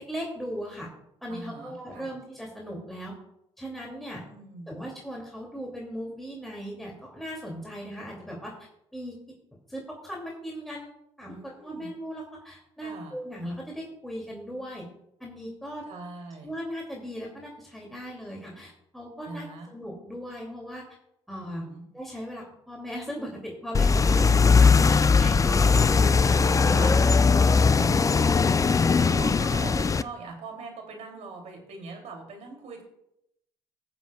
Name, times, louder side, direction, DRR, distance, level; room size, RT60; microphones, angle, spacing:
voice 1, 0.1-0.9 1.2-3.1 3.6-4.2 4.7-9.2 9.7-10.9 11.2-14.9 15.2-15.8 16.4-19.5 19.7-20.8 21.3-21.6 21.9-26.9 27.2-27.9, equal, ahead, -2 dB, 2.7 m, -38 dB
voice 2, 1.3-2.2 4.2-4.8 11.3-11.9 12.8-13.2 15.9-16.5 19.3-19.7 21.4-21.8 26.7-27.1 27.7-28.6 29.1-32.8, right 3 dB, 60° right, 2 dB, 3.0 m, -42 dB
sound 1, 23.7-30.0, left 5 dB, 25° left, 0.4 m, -20 dB
21.0 x 7.2 x 2.4 m, 0.80 s
hypercardioid pair, 55°, 13 cm